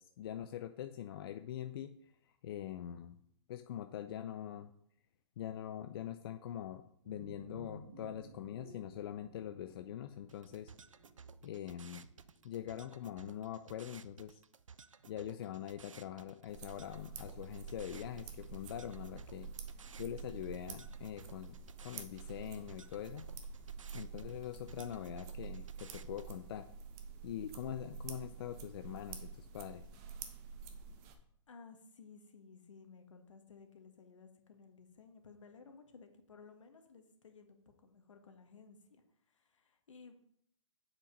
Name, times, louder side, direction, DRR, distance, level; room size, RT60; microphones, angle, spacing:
voice 1, 0.0-1.9 2.4-3.1 3.5-4.7 5.4-10.7 11.4-12.0 12.4-14.4 15.1-19.5 20.0-23.3 23.9-26.7 27.2-29.9, left 11 dB, 50° left, 8 dB, 0.5 m, -43 dB
sound 1, 7.0-13.6, right 1 dB, 70° right, 2.5 m, -57 dB
sound 2, 10.3-26.3, right 5 dB, 90° right, 0.5 m, -57 dB
sound 3, 16.5-31.1, right 6 dB, 35° right, 1.3 m, -48 dB
voice 2, 31.5-40.1, left 5 dB, 75° left, 5 dB, 1.8 m, -57 dB
7.8 x 5.9 x 5.2 m, 0.71 s
hypercardioid pair, 135°, 16 cm